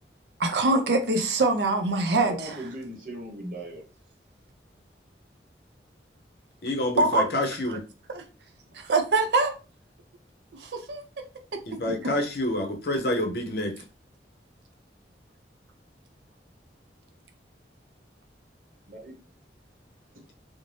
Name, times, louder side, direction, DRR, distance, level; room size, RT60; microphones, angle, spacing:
voice 1, 0.4-2.5 7.0-7.3 7.7-7.8 8.1-8.2 8.7-9.5 10.6-11.0 11.5-11.6, right 2 dB, 70° right, 0.5 m, -24 dB
voice 2, 2.1-3.8 18.9-19.1 20.1-20.2, right 1 dB, 45° right, 0.9 m, -38 dB
voice 3, 6.6-7.8 11.7-13.8, left 1 dB, 55° left, 0.6 m, -28 dB
2.6 x 2.0 x 3.2 m
head